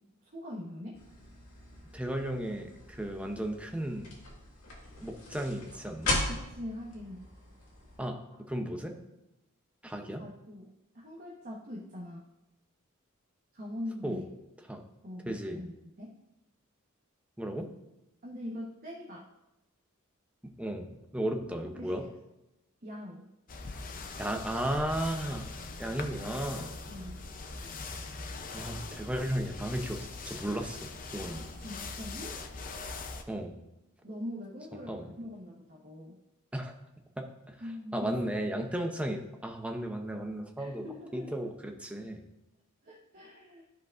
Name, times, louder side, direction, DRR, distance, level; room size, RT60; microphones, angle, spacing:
voice 1, 0.3-1.0 6.1-7.2 10.0-12.2 13.5-14.2 15.0-16.1 18.2-19.3 21.8-22.1 22.8-23.3 26.9-27.2 27.6-27.8 31.6-32.4 34.0-36.2 37.6-38.3 40.6-41.4 42.8-43.7, left 1 dB, 45° right, -4 dB, 1.1 m, -42 dB
sound 1, 0.9-8.0, left 2 dB, 80° left, 2.1 m, -38 dB
voice 2, 1.9-4.1 5.0-6.1 8.0-8.9 9.8-10.3 14.0-14.2 14.7-14.8 15.3-15.6 17.4-17.7 20.6-22.0 24.2-25.5 25.8-26.7 28.5-31.4 33.3-33.5 34.9-35.1 36.5-36.7 37.2-37.5 37.9-40.9 41.1-42.2, right 1 dB, 5° right, 4 dB, 0.7 m, -35 dB
sound 2, 23.5-33.2, left 3 dB, 40° left, 0.6 m, -41 dB
13.0 x 5.1 x 2.5 m, 0.95 s
head